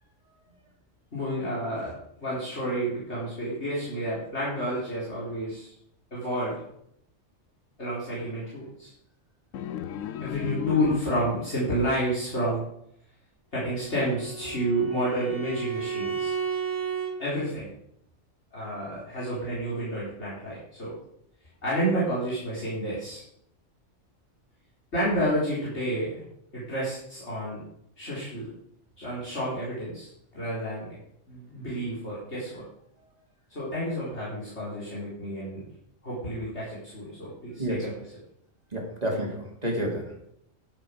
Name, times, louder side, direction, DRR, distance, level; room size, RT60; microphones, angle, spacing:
voice 1, 1.1-5.7 6.1-6.6 7.8-8.9 10.2-12.6 13.5-16.3 17.2-17.7 18.5-20.9 21.6-23.2 24.9-26.2 26.5-27.6 28.0-28.5 29.0-31.0 31.3-32.6 33.5-35.6 36.0-38.1, right 1 dB, 60° left, -8 dB, 4.5 m, -30 dB
sound 1, 9.5-11.6, left 9 dB, 80° left, 1.0 m, -33 dB
Bowed string instrument, 13.6-17.1, right 6 dB, 35° left, 4.3 m, -33 dB
voice 2, 38.7-40.3, right 1 dB, 30° right, -1 dB, 3.1 m, -30 dB
11.5 x 9.8 x 5.2 m, 0.74 s
omnidirectional pair, 1.3 m